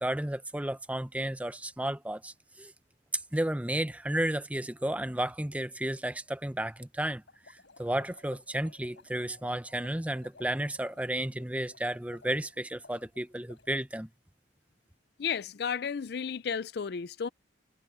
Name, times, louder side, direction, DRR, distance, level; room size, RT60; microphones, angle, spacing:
voice 1, 0.0-2.7 3.1-14.1, right 1 dB, 10° right, 0.6 m, -33 dB
sound 1, 7.3-13.7, left 3 dB, 75° left, 6.1 m, -57 dB
voice 2, 15.2-17.3, left 6 dB, 60° left, 0.4 m, -33 dB
head